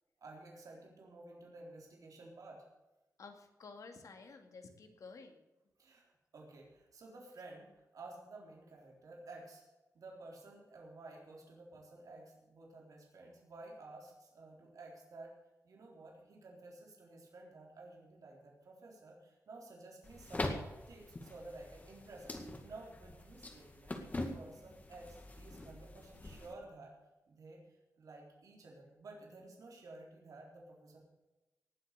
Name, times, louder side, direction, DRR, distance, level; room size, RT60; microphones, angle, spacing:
voice 1, 0.2-2.7 5.8-9.6 9.9-15.3 15.6-20.5 20.9-26.9 27.3-27.6 28.0-31.0, right 2 dB, 75° right, -1 dB, 3.9 m, -53 dB
voice 2, 3.2-5.4, left 4 dB, 70° left, 5 dB, 2.3 m, -52 dB
sound 1, 20.0-26.5, left 2 dB, 25° left, 2.0 m, -44 dB
18.5 x 7.9 x 6.7 m, 1.1 s
wide cardioid pair, 155°, 6 cm